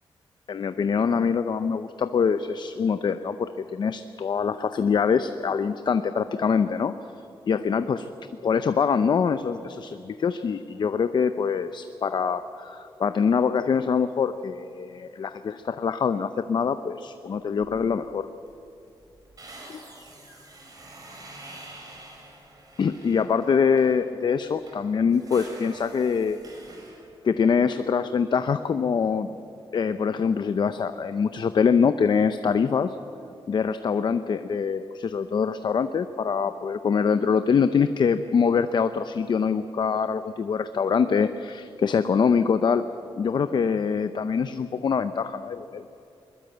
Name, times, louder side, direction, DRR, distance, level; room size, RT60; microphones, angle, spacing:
voice 1, 0.5-6.9 7.5-8.1 8.4-18.3 19.7-19.8 22.8-26.4 27.2-29.3 29.7-33.0 33.5-42.8 43.2-45.8, left 6 dB, 50° left, 10 dB, 0.7 m, -24 dB
sound 1, 17.6-18.0 18.4-18.5 18.8-24.0 24.5-27.1, right 2 dB, 40° right, 5.2 m, -47 dB
21.5 x 21.5 x 8.0 m, 2.7 s
wide cardioid pair, 125°, 10 cm